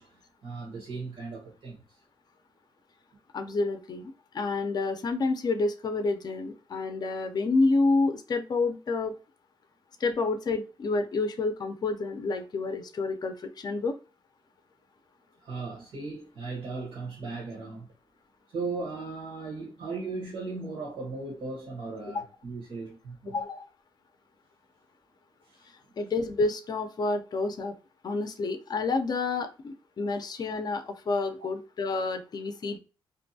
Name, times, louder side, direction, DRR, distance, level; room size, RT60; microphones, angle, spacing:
voice 1, 0.0-1.8 15.4-17.9 18.5-23.4 25.4-25.7, right 3 dB, 70° right, 1.0 m, -37 dB
voice 2, 3.3-9.2 10.0-13.9 23.3-23.7 26.0-27.8 28.0-32.8, left 3 dB, 45° left, 0.5 m, -29 dB
2.6 x 2.2 x 2.6 m
cardioid pair, 85°, 9 cm